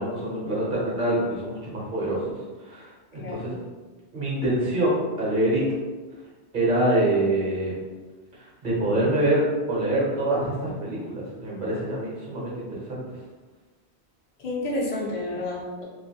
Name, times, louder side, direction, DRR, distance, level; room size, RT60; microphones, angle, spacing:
voice 1, 0.0-3.6 4.1-5.6 6.5-7.8 8.4-13.0, right 1 dB, 50° right, -6 dB, 0.9 m, -25 dB
voice 2, 3.2-3.5 14.4-15.8, left 2 dB, 45° left, -3 dB, 0.6 m, -30 dB
2.6 x 2.4 x 2.7 m, 1.3 s
omnidirectional pair, 1.1 m